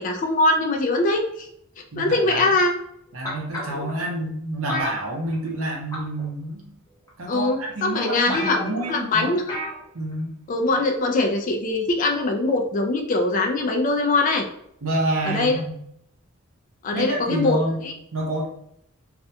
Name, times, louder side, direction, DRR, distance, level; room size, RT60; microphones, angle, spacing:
voice 1, 0.0-1.5 2.0-2.7 7.3-8.6 8.9-9.4 10.5-14.5 15.2-15.6 16.8-17.9, left 2 dB, 40° left, 3 dB, 0.3 m, -22 dB
voice 2, 1.9-2.4 3.1-6.8 7.2-9.3 9.9-10.4 14.8-15.8 16.9-17.8 18.1-18.5, right 1 dB, 75° right, -1 dB, 0.7 m, -28 dB
sound 1, 3.2-3.9 4.7-5.6 5.9-6.2 7.1-7.2 7.7-7.8 8.0-8.1 8.3-9.0 9.5-9.8 10.1-10.2, left 1 dB, 15° left, 0.7 m, -30 dB
2.4 x 2.2 x 2.7 m, 0.72 s
head